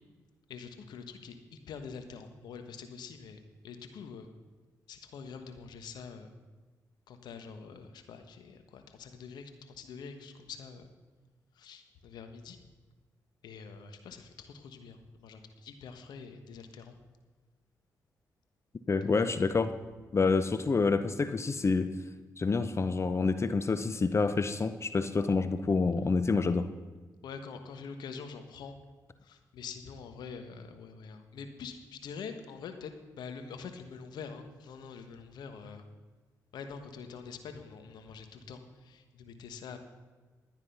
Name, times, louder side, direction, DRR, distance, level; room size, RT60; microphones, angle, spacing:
voice 1, 0.5-4.3 4.9-6.3 7.1-10.9 11.5-12.6 13.4-16.9 19.0-19.4 27.2-28.7 29.2-35.8 36.5-39.8, left 5 dB, 80° left, 7 dB, 1.4 m, -45 dB
voice 2, 18.9-19.7 20.1-21.9 22.4-26.7, left 4 dB, 40° left, 11 dB, 0.8 m, -28 dB
12.5 x 9.8 x 5.6 m, 1.3 s
supercardioid pair, 55°, 7 cm